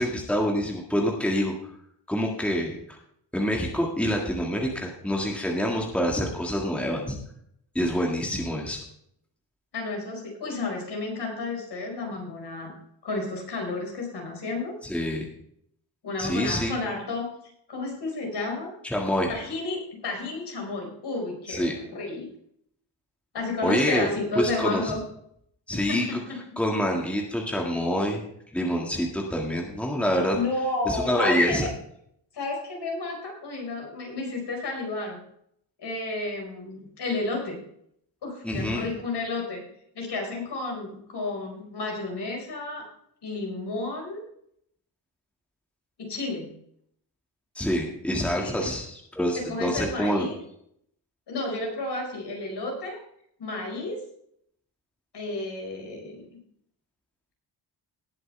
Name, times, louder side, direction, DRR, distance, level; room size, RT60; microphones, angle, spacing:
voice 1, 0.0-1.5 2.1-2.8 3.3-7.2 7.8-8.8 14.9-15.3 16.2-16.7 18.8-19.3 21.5-21.8 23.6-24.1 24.4-24.9 25.7-26.1 26.6-28.2 28.5-30.4 30.9-31.7 38.4-38.9 47.6-50.3, equal, 5° left, 0 dB, 1.8 m, -26 dB
voice 2, 9.7-12.7 13.0-14.7 16.0-17.3 17.7-18.7 19.3-22.3 23.3-25.0 25.9-26.6 30.3-31.7 32.3-35.2 35.8-37.6 38.2-39.6 39.9-42.9 43.2-44.3 46.0-46.5 48.4-48.7 49.3-50.4 51.3-53.0 53.4-54.0 55.1-56.3, left 2 dB, 65° left, 1 dB, 4.8 m, -32 dB
18.5 x 7.8 x 3.3 m, 0.69 s
wide cardioid pair, 160°, 44 cm